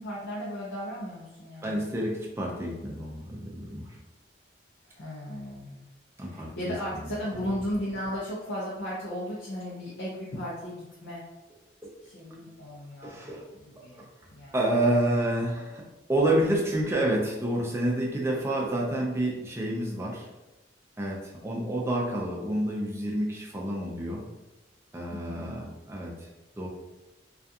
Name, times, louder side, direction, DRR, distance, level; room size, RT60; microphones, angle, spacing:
voice 1, 0.0-1.9 4.9-5.8 6.3-11.2 12.0-13.2 13.5-14.6 25.1-25.6, equal, 70° left, -7 dB, 0.5 m, -36 dB
voice 2, 1.6-3.9 6.2-6.7 13.0-13.5 14.5-20.3 21.0-24.2 24.9-26.1 26.6-26.7, right 1 dB, 15° right, -2 dB, 0.4 m, -28 dB
2.3 x 2.3 x 2.7 m, 1.0 s
head